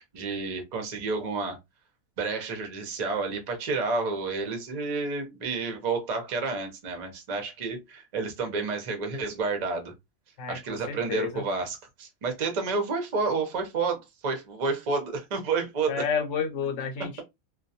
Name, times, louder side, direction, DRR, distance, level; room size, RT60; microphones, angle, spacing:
voice 1, 0.0-1.6 2.2-9.9 10.5-16.0, right 4 dB, 45° right, 0.5 m, -30 dB
voice 2, 10.4-11.4 15.9-17.2, left 6 dB, 70° left, 0.9 m, -31 dB
2.3 x 2.2 x 2.6 m
omnidirectional pair, 1.5 m